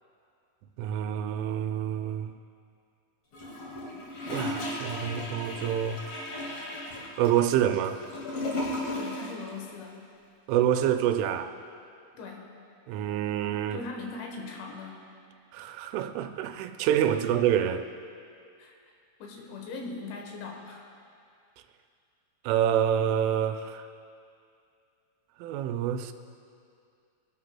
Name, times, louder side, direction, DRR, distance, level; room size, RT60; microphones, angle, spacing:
voice 1, 0.8-2.3 4.3-6.0 7.2-8.0 10.5-11.5 12.9-13.8 15.5-17.9 22.4-23.9 25.4-26.1, right 10 dB, 90° right, 7 dB, 3.1 m, -27 dB
Gurgling / Toilet flush, 3.3-9.4 9.7-9.8, left 1 dB, 50° left, 1.8 m, -35 dB
voice 2, 9.0-10.0 12.2-12.5 13.7-15.0 18.6-18.8 19.2-20.8, left 3 dB, 75° left, 1 dB, 3.4 m, -40 dB
22.0 x 11.5 x 2.2 m, 2.4 s
omnidirectional pair, 5.5 m